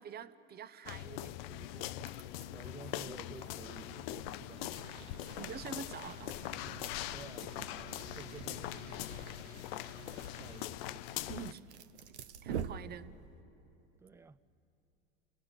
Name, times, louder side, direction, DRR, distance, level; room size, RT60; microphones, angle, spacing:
voice 1, 0.0-1.9 5.2-6.4 11.1-11.6 12.4-13.2, right 7 dB, 30° right, 12 dB, 0.8 m, -46 dB
sound 1, 0.9-11.5, left 15 dB, 65° left, 0.5 m, -42 dB
sound 2, 1.8-13.4, right 7 dB, 85° right, 0.8 m, -48 dB
voice 2, 2.5-4.8 7.1-7.6 8.1-8.8 10.2-10.8 14.0-14.4, right 4 dB, 10° right, 14 dB, 0.4 m, -52 dB
29.5 x 16.5 x 6.1 m, 2.7 s
hypercardioid pair, 95°, 33 cm